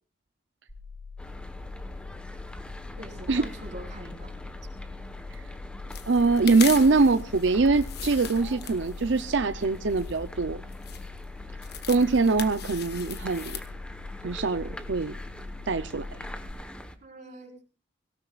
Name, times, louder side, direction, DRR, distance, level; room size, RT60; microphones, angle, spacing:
sound 1, 0.7-16.5, left 4 dB, 30° left, 5.7 m, -43 dB
sound 2, 1.2-17.0, equal, 5° left, 1.2 m, -43 dB
voice 1, 3.0-4.5 17.0-17.5, right 1 dB, 45° right, -1 dB, 4.8 m, -44 dB
sound 3, 5.9-13.7, left 7 dB, 65° left, 1.5 m, -40 dB
voice 2, 6.1-10.6 11.9-13.6 14.2-15.1 15.7-16.1, right 3 dB, 85° right, 10 dB, 0.6 m, -23 dB
24.0 x 17.0 x 2.4 m, 0.35 s
head